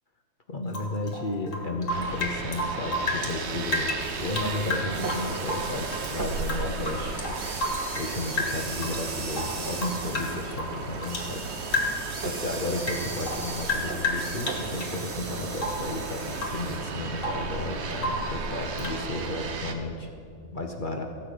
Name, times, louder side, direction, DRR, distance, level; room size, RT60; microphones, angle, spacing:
voice 1, 0.5-7.2 8.0-20.1 20.5-21.1, left 2 dB, 40° left, 4 dB, 0.9 m, -33 dB
Rain / Drip, 0.7-3.4 3.7-6.1 6.4-8.1 8.4-9.0 9.3-11.3 11.7-12.1 12.5-15.0 15.6-15.9 16.3-16.7 16.9-17.5 18.0-18.3 18.8-19.0, left 2 dB, 65° left, 2.2 m, -31 dB
sound 1, 1.9-19.8, right 4 dB, 55° right, 1.1 m, -35 dB
sound 2, 3.0-17.0, right 4 dB, 35° right, 0.8 m, -40 dB
15.5 x 5.8 x 8.3 m, 2.4 s
omnidirectional pair, 1.5 m